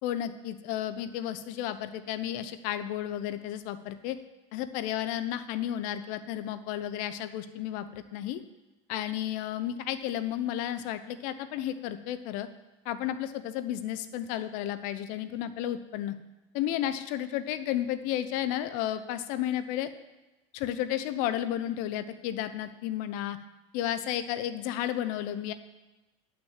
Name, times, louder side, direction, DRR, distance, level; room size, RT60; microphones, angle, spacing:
voice 1, 0.0-4.2 4.5-8.4 8.9-12.5 12.8-16.2 16.5-19.9 20.5-23.4 23.7-25.5, left 11 dB, 65° left, 12 dB, 0.8 m, -32 dB
10.5 x 6.1 x 7.4 m, 1.1 s
supercardioid pair, 115°, 15 cm